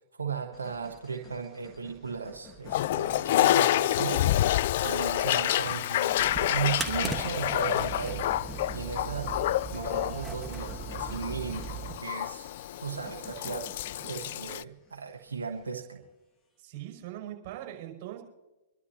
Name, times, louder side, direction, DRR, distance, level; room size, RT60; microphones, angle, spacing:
voice 1, 0.1-4.2 4.8-8.3 8.7-9.4 9.7-11.7 12.0-12.5 12.8-13.7 14.1-16.0, right 6 dB, 85° right, 2 dB, 1.3 m, -36 dB
sound 1, 0.5-15.9, left 2 dB, 15° left, 2.0 m, -54 dB
Toilet flush, 2.7-14.6, left 13 dB, 55° left, 0.4 m, -28 dB
sound 2, 6.1-12.0, right 5 dB, 10° right, 1.3 m, -38 dB
voice 2, 16.6-18.2, right 13 dB, 45° right, 1 dB, 5.6 m, -41 dB
26.0 x 12.0 x 2.8 m, 1.1 s
hypercardioid pair, 120°, 0 cm